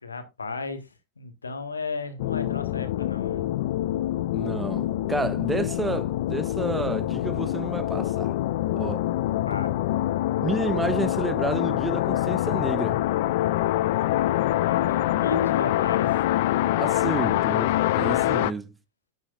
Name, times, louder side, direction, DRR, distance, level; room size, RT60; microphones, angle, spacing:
voice 1, 0.0-0.9 1.2-3.5 9.5-9.8 14.7-16.2, left 3 dB, 75° left, 1.5 m, -34 dB
sound 1, 2.2-18.5, left 14 dB, 50° left, 0.4 m, -25 dB
voice 2, 4.3-8.3 8.7-9.0 10.4-13.0 16.7-18.7, right 3 dB, 10° right, 0.9 m, -30 dB
9.7 x 8.0 x 2.5 m
figure-of-eight pair, 90°, 0 cm